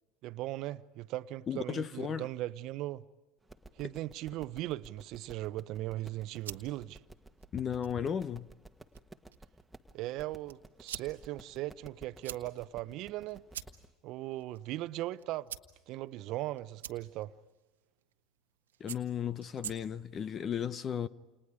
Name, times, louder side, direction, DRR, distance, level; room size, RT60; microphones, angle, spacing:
voice 1, 0.2-3.0 3.8-7.0 9.9-13.4 14.0-15.5 15.9-17.3, right 16 dB, 55° right, 0.9 m, -38 dB
voice 2, 1.5-2.3 7.5-8.5 18.8-21.1, left 8 dB, 35° left, 0.8 m, -35 dB
sound 1, 3.4-13.9, right 2 dB, 5° right, 1.6 m, -55 dB
sound 2, 6.1-20.2, right 10 dB, 85° right, 1.3 m, -50 dB
29.5 x 29.5 x 5.0 m
hypercardioid pair, 75°, 0 cm